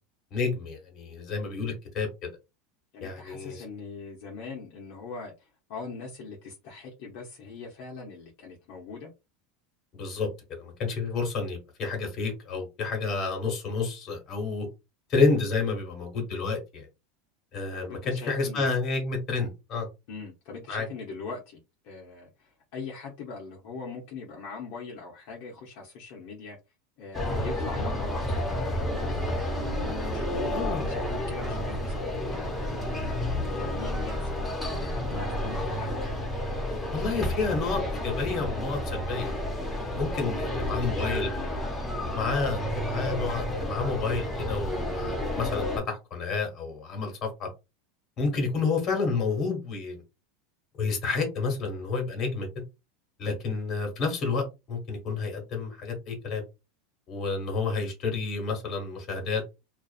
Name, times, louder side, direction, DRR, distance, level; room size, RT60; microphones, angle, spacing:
voice 1, 0.3-2.3 3.0-3.6 9.9-14.7 15.1-16.9 17.5-19.9 20.7-20.9 30.5-30.9 36.9-39.7 39.9-41.3 42.1-47.5 48.2-50.0 50.8-52.5 53.2-56.4 57.1-59.5, left 4 dB, 40° left, 1.4 m, -30 dB
voice 2, 2.9-9.1 17.8-18.7 20.1-21.6 21.8-26.6 27.0-29.8 30.0-34.5 34.8-35.9 40.1-41.6, left 4 dB, 65° left, 0.8 m, -42 dB
sound 1, 27.1-45.8, left 1 dB, 15° left, 1.1 m, -31 dB
2.5 x 2.4 x 2.4 m
supercardioid pair, 120°, 0 cm